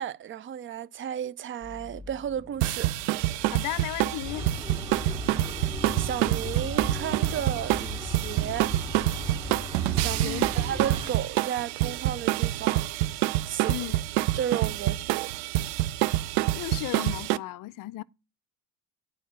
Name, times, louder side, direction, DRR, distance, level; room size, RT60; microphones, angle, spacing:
voice 1, 0.0-2.9 6.0-8.7 9.9-12.8 13.5-13.9 14.3-15.3, right 9 dB, 30° right, 0.4 m, -33 dB
sound 1, 1.6-10.8, left 3 dB, 15° left, 2.0 m, -49 dB
sound 2, 2.6-17.4, right 16 dB, 70° right, 0.6 m, -27 dB
voice 2, 3.5-4.5 10.2-10.5 13.7-14.0 16.5-18.0, left 18 dB, 50° left, 0.6 m, -34 dB
sound 3, 4.2-11.1, left 1 dB, 15° right, 1.9 m, -37 dB
9.1 x 5.1 x 6.6 m
supercardioid pair, 95°, 44 cm